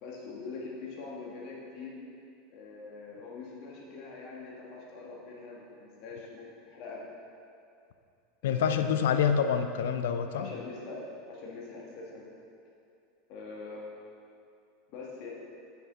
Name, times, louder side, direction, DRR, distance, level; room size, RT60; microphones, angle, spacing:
voice 1, 0.0-1.9 2.5-7.0 8.4-9.0 10.3-11.0 11.3-12.3 13.3-13.8 14.9-15.3, left 4 dB, 50° left, -4 dB, 2.0 m, -43 dB
voice 2, 8.4-10.5, left 7 dB, 65° left, 8 dB, 0.5 m, -27 dB
9.9 x 7.0 x 3.8 m, 2.4 s
figure-of-eight pair, 80°, 0 cm